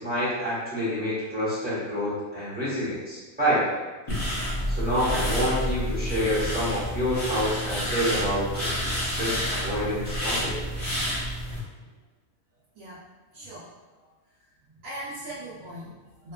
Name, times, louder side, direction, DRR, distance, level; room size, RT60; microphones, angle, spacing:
voice 1, 0.0-3.6 4.7-10.5, equal, 10° right, -11 dB, 0.8 m, -28 dB
sound 1, 4.1-11.6, equal, 30° left, 0.7 m, -29 dB
voice 2, 13.3-13.7 14.0-14.1 14.8-16.3, right 1 dB, 75° right, -10 dB, 1.0 m, -40 dB
2.8 x 2.2 x 2.2 m, 1.2 s
omnidirectional pair, 1.4 m